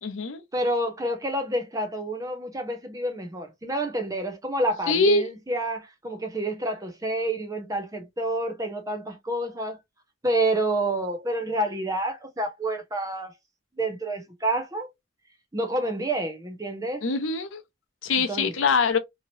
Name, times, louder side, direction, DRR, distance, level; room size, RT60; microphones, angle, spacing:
voice 1, 0.0-0.4 4.9-5.3 17.0-17.6 18.0-19.0, left 4 dB, 85° left, 0.6 m, -23 dB
voice 2, 0.5-9.8 10.2-13.3 13.8-14.9 15.5-17.1 18.3-18.5, right 1 dB, 15° right, 0.6 m, -28 dB
2.9 x 2.8 x 2.7 m
head